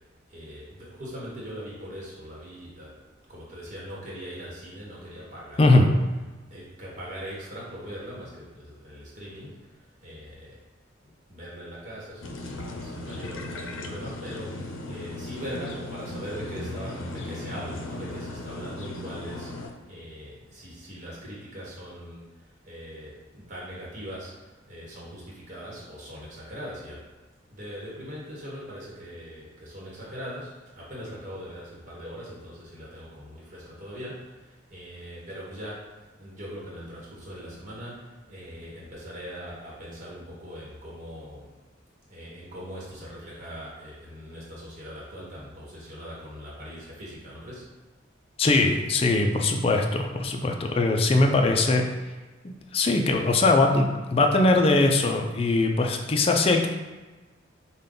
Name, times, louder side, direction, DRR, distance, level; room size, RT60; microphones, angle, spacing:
voice 1, 0.3-2.9 3.3-5.8 6.5-9.7 10.0-10.6 11.3-22.2 22.6-27.0 27.5-41.5 42.1-47.7, equal, 40° right, -5 dB, 1.1 m, -41 dB
sound 1, 12.2-19.7, left 2 dB, 85° left, 0.5 m, -37 dB
voice 2, 48.4-51.8 52.7-56.7, left 2 dB, 30° left, 3 dB, 0.4 m, -21 dB
5.1 x 2.2 x 3.8 m, 1.2 s
head